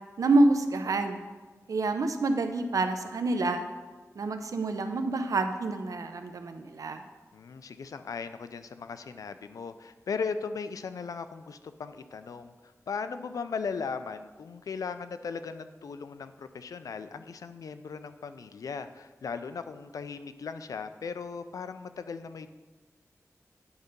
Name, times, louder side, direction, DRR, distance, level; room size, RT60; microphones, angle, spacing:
voice 1, 0.2-1.2 1.7-3.6 4.2-7.0, right 2 dB, 85° right, 7 dB, 0.6 m, -27 dB
voice 2, 7.3-12.5 12.9-22.5, left 5 dB, 90° left, 11 dB, 0.4 m, -37 dB
9.6 x 3.9 x 5.2 m, 1.3 s
wide cardioid pair, 80°, 6 cm